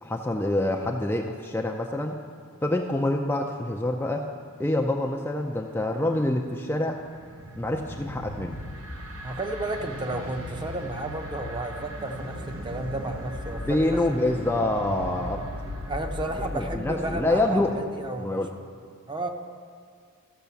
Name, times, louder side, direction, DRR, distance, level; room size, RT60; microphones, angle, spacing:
voice 1, 0.0-2.2 2.6-4.3 4.6-7.0 7.6-8.6 13.7-15.4 16.5-17.7 18.2-18.5, left 1 dB, 10° left, 1 dB, 0.4 m, -26 dB
sound 1, 6.0-17.5, equal, 75° right, 1.0 m, -38 dB
voice 2, 9.2-14.4 15.9-18.4 19.1-19.3, right 1 dB, 20° right, 4 dB, 0.7 m, -32 dB
13.5 x 5.4 x 7.0 m, 2.1 s
head